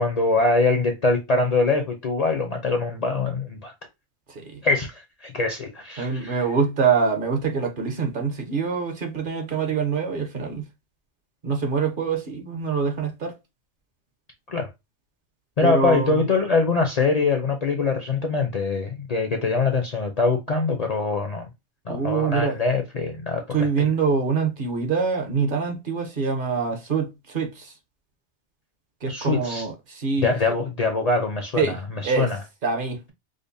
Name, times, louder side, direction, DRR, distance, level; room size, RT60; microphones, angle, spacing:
voice 1, 0.0-3.7 4.6-6.4 14.5-14.7 15.6-21.5 21.9-23.7 29.1-29.6 30.2-32.4, left 3 dB, 45° left, 0.5 m, -23 dB
voice 2, 4.3-4.6 6.0-10.6 11.4-13.3 15.6-16.3 21.9-22.6 23.5-27.7 29.0-30.3 31.6-31.8 32.0-32.3 32.6-33.1, right 5 dB, 50° right, 0.9 m, -25 dB
5.0 x 2.1 x 2.6 m
omnidirectional pair, 1.2 m